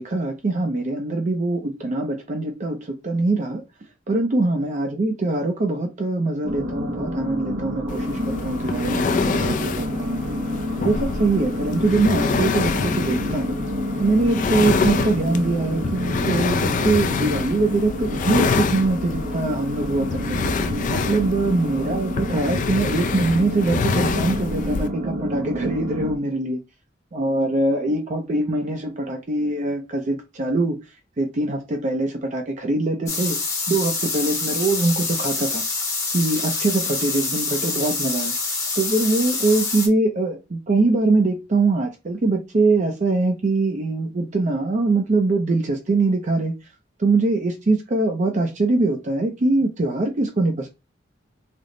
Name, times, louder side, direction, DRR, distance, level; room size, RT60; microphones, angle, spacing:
voice 1, 0.0-3.6 4.1-10.2 10.8-13.6 14.0-20.4 20.9-26.6 27.1-30.8 31.2-33.4 33.7-35.6 36.1-38.3 38.8-46.5 47.0-50.7, right 2 dB, 40° right, 0.5 m, -23 dB
sound 1, 6.4-26.2, equal, 70° right, 0.7 m, -29 dB
sound 2, 7.9-24.9, left 5 dB, 45° left, 0.3 m, -26 dB
sound 3, 33.1-39.9, left 3 dB, 15° left, 0.8 m, -26 dB
3.3 x 2.0 x 3.7 m
head